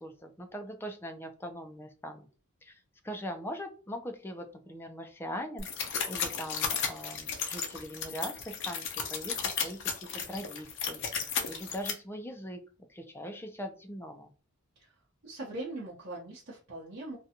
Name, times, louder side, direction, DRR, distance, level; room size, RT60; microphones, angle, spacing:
voice 1, 0.0-2.3 2.6-2.8 3.0-8.8 9.1-12.6 12.9-14.3, equal, 10° left, 5 dB, 0.4 m, -41 dB
sound 1, 5.6-11.9, left 6 dB, 60° left, 0.6 m, -34 dB
voice 2, 15.2-17.2, right 2 dB, 55° right, -7 dB, 0.8 m, -41 dB
2.5 x 2.2 x 2.7 m, 0.35 s
head